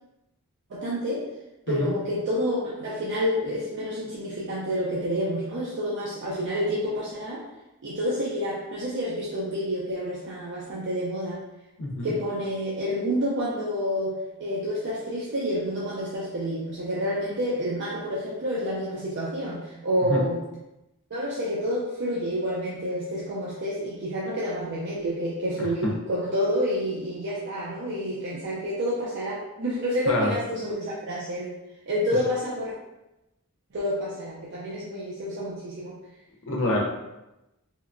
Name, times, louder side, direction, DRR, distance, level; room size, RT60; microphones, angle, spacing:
voice 1, 0.7-1.3 1.7-7.4 7.8-11.4 12.0-20.4 21.1-31.5 31.9-32.7 33.7-35.9, equal, 55° right, -6 dB, 0.5 m, -29 dB
voice 2, 11.8-12.1 20.1-20.2 25.6-25.7 30.1-30.3 36.5-36.8, left 1 dB, 60° left, -1 dB, 0.5 m, -26 dB
2.9 x 2.1 x 2.4 m, 0.96 s
head